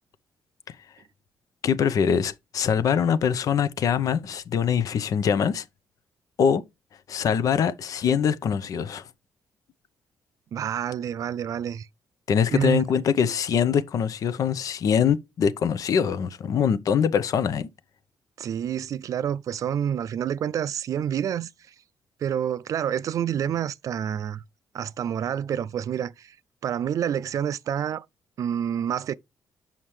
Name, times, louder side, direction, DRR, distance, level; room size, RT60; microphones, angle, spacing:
voice 1, 1.6-5.6 6.4-6.6 7.1-9.1 12.3-17.7, left 7 dB, 60° left, 0.7 m, -23 dB
voice 2, 10.5-11.9 12.5-12.8 18.4-21.7 22.2-24.4 24.7-26.4 26.6-28.1 28.4-29.2, right 9 dB, 55° right, 0.3 m, -28 dB
7.3 x 5.7 x 3.2 m
cardioid pair, 115°, 7 cm